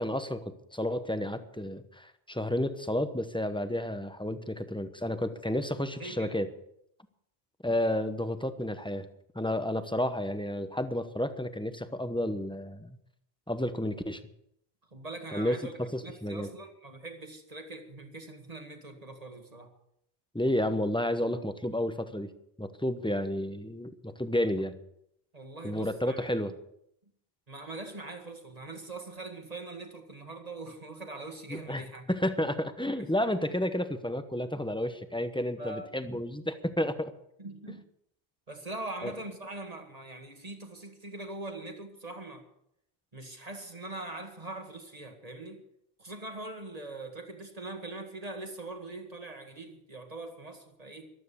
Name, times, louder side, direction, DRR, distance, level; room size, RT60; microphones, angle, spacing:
voice 1, 0.0-6.5 7.6-9.1 9.3-13.0 13.5-14.2 15.3-16.5 20.3-22.3 22.6-24.8 25.6-26.5 31.5-37.1 39.0-39.1, left 1 dB, 5° left, 10 dB, 0.9 m, -31 dB
voice 2, 6.0-6.4 14.9-19.7 25.3-26.3 27.5-32.1 32.9-33.1 35.6-35.9 37.4-37.8 38.5-42.5 43.1-45.7 46.0-51.1, right 2 dB, 35° right, 5 dB, 2.0 m, -42 dB
14.5 x 12.5 x 6.9 m, 0.75 s
omnidirectional pair, 1.1 m